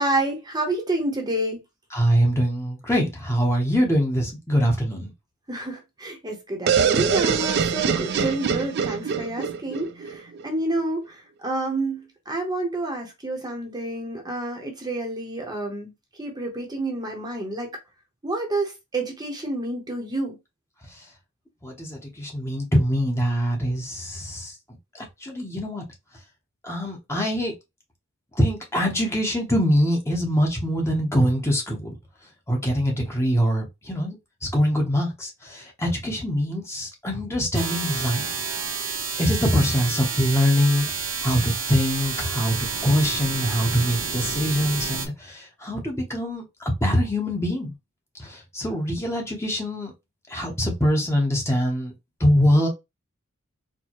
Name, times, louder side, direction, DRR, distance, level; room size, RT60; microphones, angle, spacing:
voice 1, 0.0-1.6 5.5-15.9 16.2-17.7 18.2-20.4, right 2 dB, 20° right, 0.8 m, -29 dB
voice 2, 1.9-5.1 20.9-21.0 21.6-24.6 24.9-25.8 26.6-27.5 28.3-31.9 32.5-34.2 34.4-38.4 39.2-47.7 48.2-49.9 50.3-51.9 52.2-52.7, equal, 15° left, 0.8 m, -23 dB
sound 1, 6.7-10.4, right 6 dB, 50° right, 0.4 m, -24 dB
sound 2, 37.5-45.1, right 5 dB, 70° right, 0.9 m, -29 dB
4.4 x 2.1 x 2.9 m
head